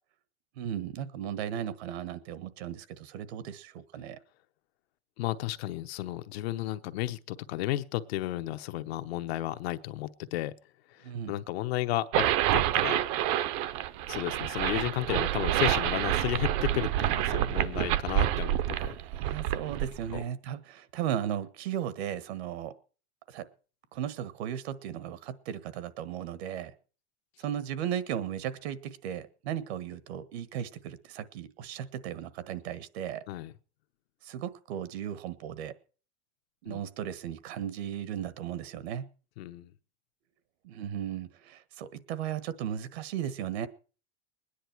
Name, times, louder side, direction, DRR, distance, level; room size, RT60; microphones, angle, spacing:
voice 1, 0.6-4.2 11.0-11.4 18.7-22.7 23.3-23.5 23.9-26.7 27.4-33.2 34.2-35.7 36.6-39.0 40.6-43.7, right 10 dB, 75° right, 15 dB, 1.5 m, -36 dB
voice 2, 5.2-10.5 11.3-13.0 14.1-19.0 20.1-20.2 33.3-33.5 36.7-36.8 39.4-39.7, left 15 dB, 70° left, 10 dB, 1.0 m, -33 dB
sound 1, 12.1-20.2, right 13 dB, 35° right, 0.6 m, -28 dB
21.0 x 10.0 x 4.6 m, 0.38 s
supercardioid pair, 170°, 32 cm